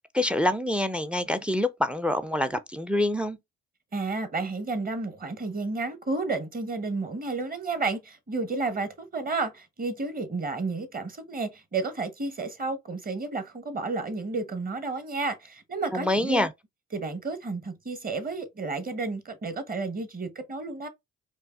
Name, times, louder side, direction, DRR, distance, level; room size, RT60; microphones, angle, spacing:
voice 1, 0.1-3.4 15.9-16.5, left 1 dB, 5° right, 0.4 m, -26 dB
voice 2, 3.9-16.5 16.9-20.9, right 3 dB, 30° right, 0.9 m, -31 dB
4.4 x 2.6 x 2.3 m
hypercardioid pair, 50°, 31 cm